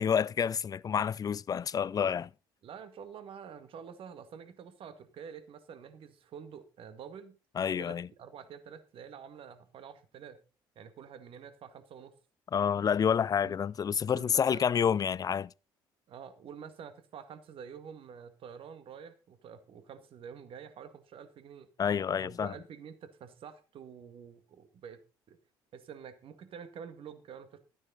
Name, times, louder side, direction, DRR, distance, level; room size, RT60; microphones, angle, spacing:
voice 1, 0.0-2.3 7.6-8.1 12.5-15.5 21.8-22.5, left 7 dB, 35° left, 0.4 m, -28 dB
voice 2, 2.6-7.4 7.8-10.4 10.8-12.1 13.4-13.6 14.1-14.7 16.1-21.7 22.2-25.4 25.7-27.6, right 7 dB, 55° right, 1.9 m, -48 dB
12.5 x 9.3 x 4.0 m
hypercardioid pair, 65°, 11 cm